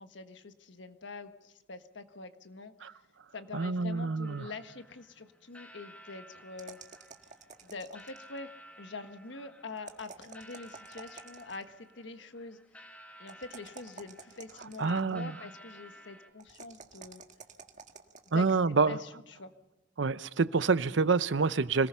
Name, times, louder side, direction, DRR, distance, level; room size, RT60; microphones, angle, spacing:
voice 1, 0.0-2.7 3.3-6.8 7.6-8.5 8.8-12.6 13.2-17.2 18.3-18.5 18.9-19.1 19.4-19.5, left 3 dB, 70° left, 1.5 m, -44 dB
voice 2, 3.5-4.5 14.6-15.4 18.3-19.0 20.0-21.9, right 4 dB, 75° right, 0.7 m, -27 dB
sound 1, 4.2-16.3, equal, 10° left, 2.0 m, -55 dB
sound 2, 6.6-8.4 9.8-11.7 13.3-15.1 16.4-18.3, right 5 dB, 40° right, 1.7 m, -51 dB
26.0 x 19.0 x 5.6 m
head